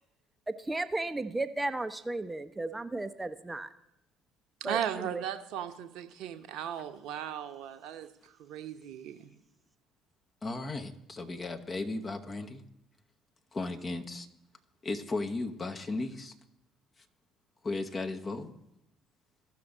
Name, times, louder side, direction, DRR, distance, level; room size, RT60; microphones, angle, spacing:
voice 1, 0.5-3.7 4.6-5.2, right 2 dB, 15° right, 0.6 m, -34 dB
voice 2, 4.6-8.1 8.4-9.3, right 9 dB, 60° right, 0.8 m, -37 dB
voice 3, 10.4-12.6 13.5-14.3 14.8-16.3 17.6-18.5, left 3 dB, 30° left, 1.1 m, -35 dB
15.5 x 6.0 x 3.9 m
figure-of-eight pair, 55°, 0 cm